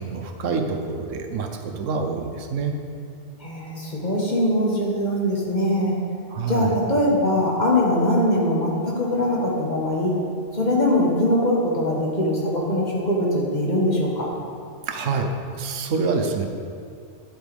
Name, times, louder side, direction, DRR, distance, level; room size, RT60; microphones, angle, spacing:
voice 1, 0.0-1.5 1.8-2.7 6.3-6.7 14.9-15.3 15.5-16.5, right 4 dB, 80° right, 5 dB, 1.1 m, -26 dB
voice 2, 3.4-5.9 6.5-10.1 10.5-14.3, left 1 dB, 35° left, -3 dB, 1.5 m, -22 dB
10.5 x 7.9 x 3.5 m, 2.3 s
omnidirectional pair, 1.3 m